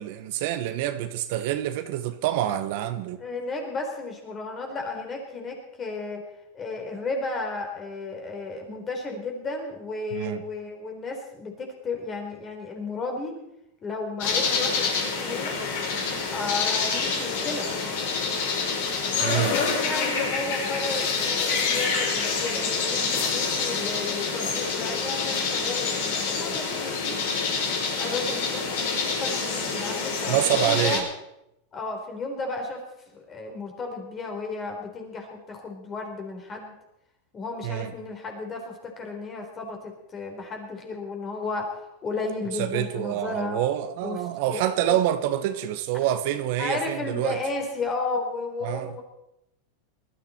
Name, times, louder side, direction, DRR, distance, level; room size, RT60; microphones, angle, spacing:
voice 1, 0.0-3.2 10.1-10.4 19.2-19.5 30.3-31.0 37.6-37.9 42.5-47.4 48.6-48.9, right 12 dB, 60° right, 9 dB, 1.1 m, -27 dB
voice 2, 3.2-6.2 6.5-13.4 13.8-15.6 16.3-17.7 19.4-27.2 28.0-28.8 29.1-31.0 31.7-32.8 33.1-36.7 37.3-43.6 44.0-44.2 44.5-45.0 46.6-49.0, left 3 dB, 20° left, 2 dB, 3.9 m, -33 dB
sound 1, 14.2-31.0, left 5 dB, 65° left, 5.3 m, -27 dB
19.5 x 13.5 x 4.4 m, 0.82 s
supercardioid pair, 145°, 0 cm